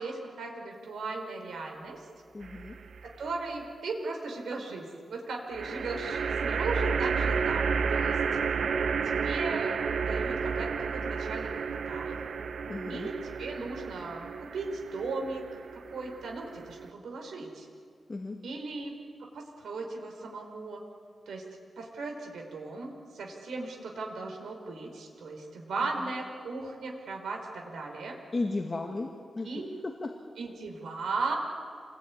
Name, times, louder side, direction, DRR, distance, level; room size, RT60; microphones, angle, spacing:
voice 1, 0.0-2.0 3.2-8.2 9.0-11.5 11.9-12.2 12.9-15.4 15.7-17.7 18.4-18.9 19.3-20.8 21.3-21.4 21.8-28.2 29.4-29.7 30.4-31.4, right 3 dB, 85° right, 2 dB, 4.8 m, -37 dB
voice 2, 2.3-2.8 12.7-13.1 18.1-18.4 28.3-29.5 29.8-30.1, left 3 dB, 25° left, 3 dB, 2.0 m, -34 dB
sound 1, 2.4-3.1 5.5-16.9, right 5 dB, 65° right, 1.0 m, -31 dB
28.5 x 21.0 x 9.8 m, 2.3 s
wide cardioid pair, 150°, 0 cm